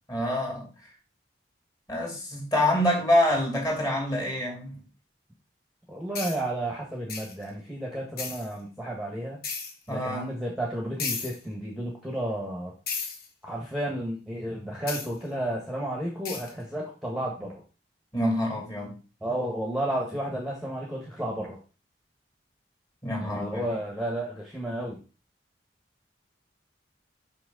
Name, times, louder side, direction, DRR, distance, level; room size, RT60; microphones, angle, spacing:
voice 1, 0.1-0.7 1.9-4.8 9.9-10.3 18.1-19.0 23.0-23.7, left 1 dB, 20° left, -1 dB, 2.6 m, -26 dB
voice 2, 5.9-9.4 9.9-12.7 13.4-17.6 19.2-21.6 23.2-25.0, right 1 dB, ahead, -2 dB, 1.3 m, -32 dB
sound 1, 6.2-6.4 7.1-7.4 8.2-8.5 9.4-9.7 11.0-11.4 12.9-13.3 14.9-15.1 16.3-16.5, left 5 dB, 55° left, 1.1 m, -34 dB
6.1 x 5.7 x 3.9 m, 0.33 s
head